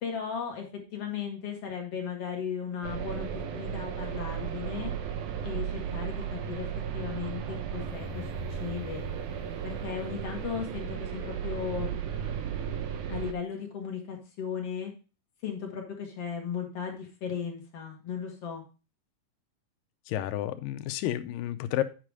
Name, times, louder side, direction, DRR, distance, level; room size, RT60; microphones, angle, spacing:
voice 1, 0.0-4.9 5.4-6.7 6.9-9.0 9.6-11.9 13.1-14.9 15.4-18.6, left 7 dB, 55° left, 1 dB, 2.2 m, -36 dB
sound 1, 2.8-13.3, right 8 dB, 70° right, 2.2 m, -35 dB
sound 2, 7.7-10.6, left 8 dB, 15° left, 2.2 m, -46 dB
voice 2, 20.1-21.8, left 13 dB, 85° left, 10 dB, 2.3 m, -31 dB
8.9 x 4.9 x 4.7 m, 0.32 s
omnidirectional pair, 3.9 m